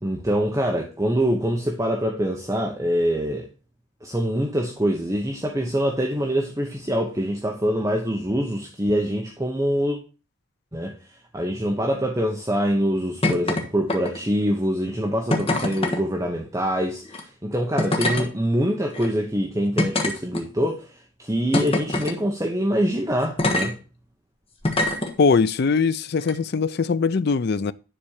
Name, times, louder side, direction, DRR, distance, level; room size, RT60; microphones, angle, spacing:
voice 1, 0.0-3.5 4.0-10.0 10.7-23.8, equal, 15° right, 0.9 m, -24 dB
sound 1, 13.2-13.6 13.9-14.3 15.3-16.0 17.0-17.2 17.8-18.3 18.9-19.1 19.8-20.7 21.5-22.2 23.4-23.7 24.6-25.1 26.2-26.3, left 2 dB, 25° left, 1.2 m, -23 dB
voice 2, 25.2-27.7, left 5 dB, 50° left, 0.4 m, -21 dB
10.0 x 4.3 x 6.5 m
head